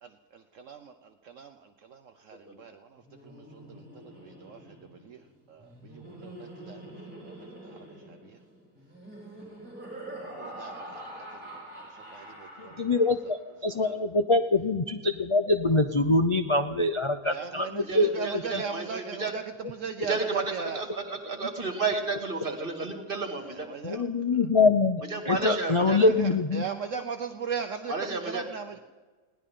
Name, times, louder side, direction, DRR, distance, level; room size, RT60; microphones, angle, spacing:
voice 1, 0.5-5.2 5.5-7.8 8.1-8.4 10.1-11.6 11.9-13.1 13.7-14.0 17.2-20.8 23.4-24.0 25.9-28.8, right 6 dB, 60° right, 7 dB, 1.1 m, -39 dB
Laughter, 3.0-13.4, right 1 dB, 5° right, 5.0 m, -45 dB
voice 2, 12.6-18.3 23.8-26.6, left 3 dB, 35° left, 7 dB, 0.5 m, -24 dB
voice 3, 17.8-19.3 20.0-23.7 23.9-24.0 25.1-26.0 27.9-28.4, right 3 dB, 35° right, 3 dB, 2.4 m, -32 dB
21.0 x 17.5 x 3.8 m, 1.3 s
omnidirectional pair, 1.5 m